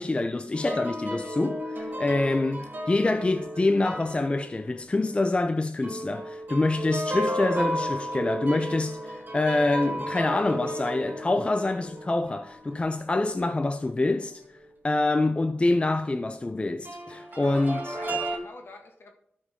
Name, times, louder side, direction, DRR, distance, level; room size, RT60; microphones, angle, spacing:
voice 1, 0.0-14.4 14.8-18.2, left 2 dB, 25° left, 0.5 m, -26 dB
sound 1, 0.5-5.5 5.8-13.6 14.2-14.3 16.9-18.4, equal, 50° right, 2.0 m, -34 dB
voice 2, 17.3-19.1, left 2 dB, 65° left, 1.7 m, -46 dB
12.5 x 5.2 x 3.6 m
cardioid pair, 65°, 4 cm